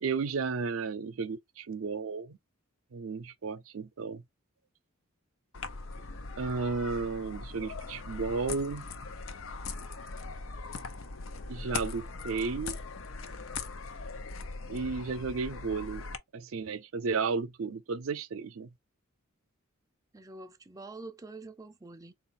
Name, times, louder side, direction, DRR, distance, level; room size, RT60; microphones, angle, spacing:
voice 1, 0.0-2.4 2.9-4.2 6.4-8.9 11.5-12.8 14.7-16.0 16.3-18.7, right 4 dB, 80° right, 0.5 m, -33 dB
sound 1, 5.5-16.2, left 4 dB, 75° left, 0.6 m, -40 dB
voice 2, 20.1-22.1, right 3 dB, 15° right, 0.4 m, -46 dB
3.9 x 2.4 x 4.0 m
head